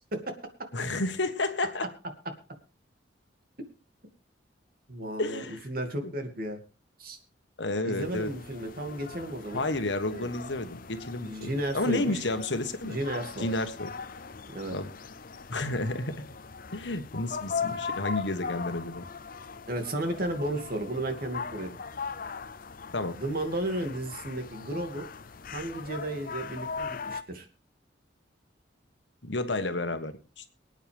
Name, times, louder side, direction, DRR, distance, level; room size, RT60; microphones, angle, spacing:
voice 1, 0.7-1.8 5.2-5.6 6.0-6.1 7.6-8.3 9.5-13.0 13.4-13.9 14.7-14.9 15.5-16.2 16.7-19.0 22.9-23.2 29.2-30.6, left 2 dB, 75° left, 9 dB, 1.5 m, -31 dB
voice 2, 4.9-6.6 7.0-7.2 7.8-9.6 10.1-10.3 11.3-12.2 12.8-13.5 14.5-14.8 19.7-21.7 23.2-25.1 25.5-27.5, right 1 dB, 55° right, 5 dB, 2.6 m, -33 dB
sound 1, 8.0-27.2, left 5 dB, 50° left, 0.7 m, -40 dB
24.0 x 9.2 x 3.6 m, 0.33 s
head